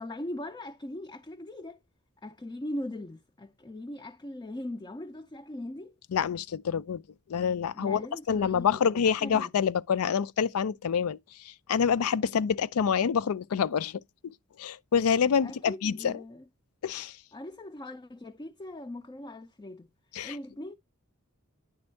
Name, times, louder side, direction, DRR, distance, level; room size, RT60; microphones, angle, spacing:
voice 1, 0.0-1.8 2.2-6.0 7.7-9.5 15.4-16.5 17.3-19.9 20.2-20.7, left 1 dB, 20° left, 0.4 m, -40 dB
voice 2, 6.1-7.0 7.3-8.0 8.3-14.0 14.6-16.1 16.8-17.2 20.1-20.4, left 7 dB, 80° left, 0.4 m, -27 dB
9.8 x 3.5 x 4.3 m
head